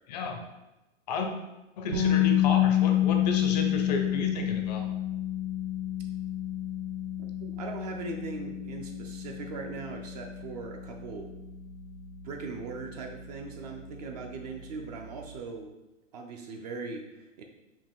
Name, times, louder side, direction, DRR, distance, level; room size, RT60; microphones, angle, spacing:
voice 1, 0.1-0.5 1.1-1.3 1.8-4.9, left 3 dB, 35° left, 4 dB, 0.5 m, -32 dB
sound 1, 1.9-13.8, left 12 dB, 65° right, 1.3 m, -29 dB
voice 2, 7.4-11.3 12.2-15.7 16.1-17.4, right 4 dB, 35° right, 3 dB, 0.4 m, -40 dB
4.8 x 2.7 x 3.5 m, 1.0 s
hypercardioid pair, 130°, 37 cm